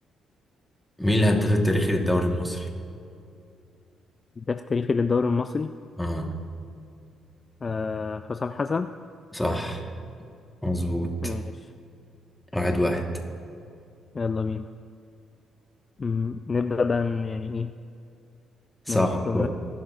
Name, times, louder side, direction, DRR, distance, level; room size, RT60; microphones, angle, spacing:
voice 1, 1.0-2.7 6.0-6.4 9.3-9.8 10.6-11.3 12.5-13.0 18.9-19.5, left 1 dB, 5° left, 2 dB, 1.4 m, -24 dB
voice 2, 4.4-5.7 7.6-8.9 11.2-11.7 14.1-14.6 16.0-17.7 18.9-19.5, left 4 dB, 35° left, 10 dB, 0.3 m, -27 dB
19.5 x 11.5 x 2.5 m, 2.5 s
cardioid pair, 90°, 0 cm